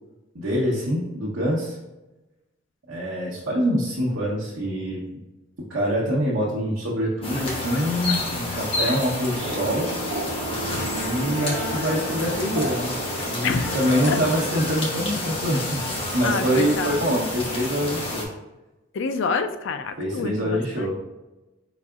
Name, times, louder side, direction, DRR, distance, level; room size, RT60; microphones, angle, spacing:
voice 1, 0.3-1.8 2.9-5.0 5.7-9.9 11.0-13.0 13.3-15.8 16.1-18.2 20.0-20.9, equal, 70° right, -6 dB, 0.9 m, -25 dB
sound 1, 7.2-18.2, left 2 dB, 25° left, 0.9 m, -29 dB
sound 2, 9.4-14.9, right 3 dB, 50° right, 0.4 m, -34 dB
voice 2, 13.4-13.8 14.1-14.2 16.2-17.2 18.9-20.9, left 5 dB, 65° left, 8 dB, 0.4 m, -27 dB
4.7 x 4.0 x 2.4 m, 1.1 s
head